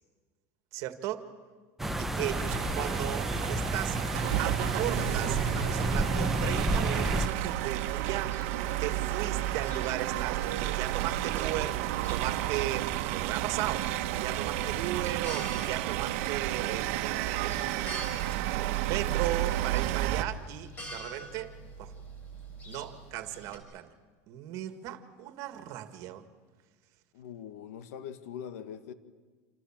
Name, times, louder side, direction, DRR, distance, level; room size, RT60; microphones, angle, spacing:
voice 1, 0.7-1.3 2.0-2.5 2.7-4.0 4.4-8.5 8.8-18.3 18.6-21.5 21.8-21.9 22.7-23.9 24.3-26.3, right 13 dB, 40° right, 1.9 m, -37 dB
sound 1, 1.8-7.3, right 1 dB, 5° right, 0.8 m, -30 dB
sound 2, 2.3-20.2, right 14 dB, 60° right, 1.2 m, -31 dB
sound 3, 4.2-23.6, right 1 dB, 20° left, 5.6 m, -48 dB
voice 2, 27.1-28.9, left 8 dB, 75° left, 1.5 m, -42 dB
29.0 x 28.0 x 7.4 m
supercardioid pair, 175°, 8 cm